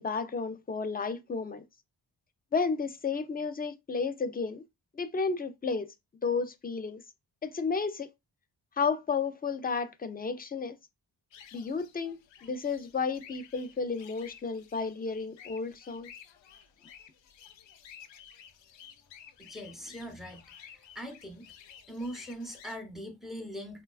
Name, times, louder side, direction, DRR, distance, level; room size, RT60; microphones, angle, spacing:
voice 1, 0.0-1.6 2.5-4.6 4.9-5.9 6.2-7.0 7.4-8.1 8.8-10.8 11.5-16.1, left 5 dB, 25° left, 0.3 m, -32 dB
sound 1, 11.3-22.8, left 8 dB, 75° left, 0.5 m, -53 dB
voice 2, 19.4-20.4 20.9-21.5 21.9-23.8, equal, ahead, 0.7 m, -41 dB
4.7 x 2.2 x 2.3 m
wide cardioid pair, 85°, 45 cm